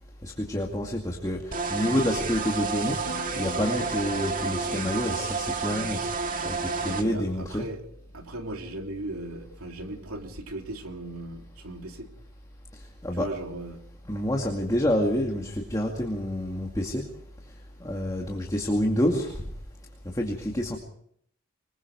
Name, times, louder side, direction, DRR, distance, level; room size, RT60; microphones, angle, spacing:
voice 1, 0.2-1.4 1.7-3.0 3.4-6.1 6.4-6.6 6.8-7.7 13.0-13.3 14.1-17.0 17.8-19.3 20.1-20.8, equal, 15° left, 2.3 m, -28 dB
sound 1, 1.5-7.0, right 4 dB, 40° right, 1.8 m, -30 dB
sound 2, 3.1-7.4 7.7-8.2, equal, 55° left, 3.9 m, -45 dB
voice 2, 6.8-7.8 8.1-12.1 13.1-13.8, right 1 dB, 85° right, 3.0 m, -37 dB
25.5 x 21.0 x 4.8 m
head